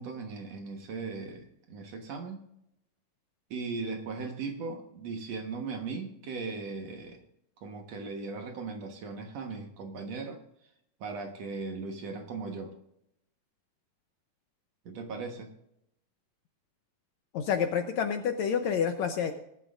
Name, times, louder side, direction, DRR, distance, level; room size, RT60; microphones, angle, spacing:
voice 1, 0.0-2.5 3.5-7.2 7.6-10.4 11.0-12.7 14.9-15.5, right 4 dB, 60° right, 4 dB, 2.2 m, -38 dB
voice 2, 17.3-19.3, left 7 dB, 75° left, 6 dB, 1.8 m, -28 dB
20.5 x 11.0 x 2.5 m, 0.79 s
omnidirectional pair, 3.9 m